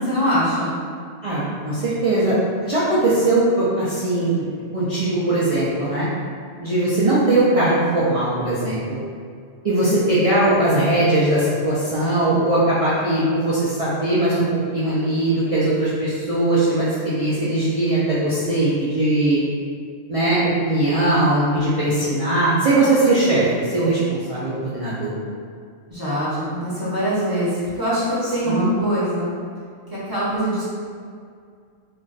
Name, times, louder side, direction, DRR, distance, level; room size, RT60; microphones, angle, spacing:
voice 1, 0.1-0.8 25.9-29.3 29.9-30.6, equal, 20° right, -10 dB, 0.8 m, -23 dB
voice 2, 1.2-4.5 4.7-6.1 6.6-9.0 9.6-14.4 14.7-19.4 20.1-25.1 28.4-28.7, right 2 dB, 60° right, -10 dB, 0.3 m, -20 dB
2.4 x 2.3 x 3.9 m, 2.2 s
omnidirectional pair, 1.3 m